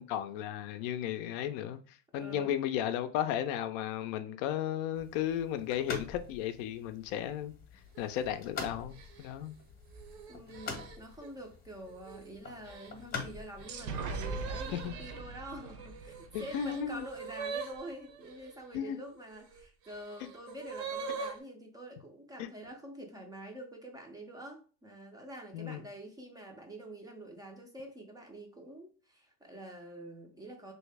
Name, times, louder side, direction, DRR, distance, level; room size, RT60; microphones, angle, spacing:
voice 1, 0.0-1.8 2.1-7.5 8.0-9.5 14.7-14.9 16.3-17.0 18.7-19.0 22.4-22.5 25.5-25.8, left 10 dB, 55° left, 0.4 m, -34 dB
voice 2, 2.2-2.5 10.3-30.7, right 1 dB, 10° right, 0.4 m, -47 dB
sound 1, 4.9-14.9, left 5 dB, 25° left, 0.8 m, -46 dB
sound 2, 7.9-8.3 8.9-11.3 11.9-12.3 12.7-18.5 19.3-21.4, right 5 dB, 70° right, 0.9 m, -44 dB
sound 3, 13.7-17.4, right 3 dB, 50° right, 0.7 m, -41 dB
3.1 x 2.7 x 3.3 m
supercardioid pair, 140°, 34 cm